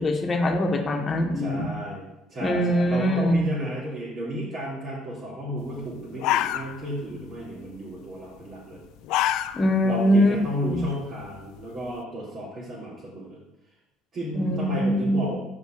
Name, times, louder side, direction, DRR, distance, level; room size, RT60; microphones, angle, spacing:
voice 1, 0.0-1.7 2.4-3.4 9.5-10.3 10.7-10.8 14.3-15.3, equal, 30° left, 3 dB, 1.4 m, -23 dB
voice 2, 1.3-2.0 2.3-8.8 9.8-13.4 14.1-15.4, equal, 45° right, -8 dB, 3.2 m, -33 dB
sound 1, 5.7-5.8 6.1-7.1 7.4-7.8 8.8-9.8 10.2-10.3 10.9-11.9, left 13 dB, 70° left, 0.4 m, -27 dB
5.6 x 5.4 x 6.7 m, 0.92 s
supercardioid pair, 95°, 0 cm